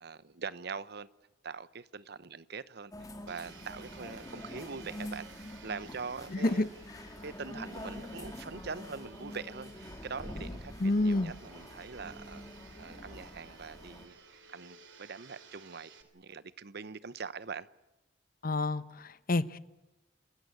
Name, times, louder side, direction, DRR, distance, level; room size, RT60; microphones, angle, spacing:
voice 1, 0.0-1.1 1.4-6.7 7.2-10.7 11.0-12.4 12.8-14.1 14.5-17.7, right 5 dB, 60° right, 0.9 m, -43 dB
sound 1, 2.9-14.1, left 1 dB, 20° left, 2.4 m, -46 dB
Domestic sounds home sounds, 3.3-16.0, right 5 dB, 80° right, 2.7 m, -55 dB
voice 2, 6.3-6.6 10.8-11.3 18.4-19.6, left 2 dB, 50° left, 0.9 m, -28 dB
28.0 x 14.5 x 9.6 m
head